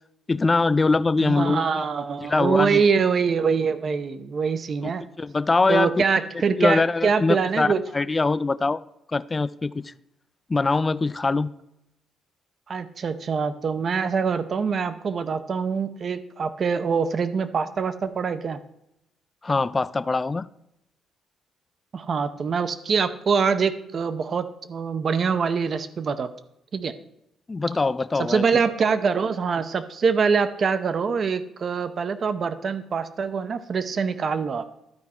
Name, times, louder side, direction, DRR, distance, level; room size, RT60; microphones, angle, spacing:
voice 1, 0.3-1.8 2.2-2.8 4.8-4.9 5.2-5.9 6.6-8.8 9.1-9.9 10.5-11.5 19.4-20.5 27.5-28.4, left 3 dB, 25° left, 0.3 m, -23 dB
voice 2, 1.2-5.0 5.7-7.8 12.7-18.6 21.9-26.3 26.7-26.9 28.2-34.8, right 5 dB, 45° right, 0.6 m, -24 dB
12.5 x 4.7 x 4.3 m
cardioid pair, 105°, 0 cm